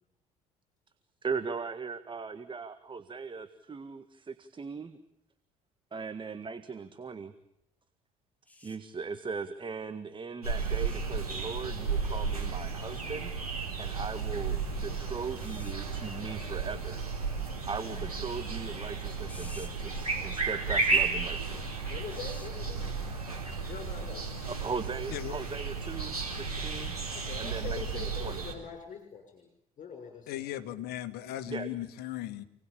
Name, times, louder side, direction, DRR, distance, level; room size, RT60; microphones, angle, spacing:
voice 1, 1.2-5.0 5.9-7.3 8.6-13.4 13.8-14.6 14.8-17.0 17.7-21.7 24.4-27.0 27.4-28.5 31.5-31.7, right 5 dB, 25° right, 10 dB, 1.8 m, -39 dB
sound 1, 8.5-8.8 10.6-11.0 12.3-12.5 15.3-15.8 19.3-19.7 20.9-21.1 22.1-22.5 24.0-24.1, left 2 dB, 10° left, 5.5 m, -52 dB
sound 2, 10.4-28.5, right 4 dB, 90° right, 4.3 m, -33 dB
voice 2, 21.9-22.9 23.6-24.3 27.1-29.5 29.8-30.6, left 6 dB, 40° left, 4 dB, 6.5 m, -44 dB
voice 3, 30.3-32.4, left 13 dB, 60° left, 10 dB, 2.2 m, -37 dB
29.0 x 19.5 x 8.8 m, 0.80 s
figure-of-eight pair, 55°, 18 cm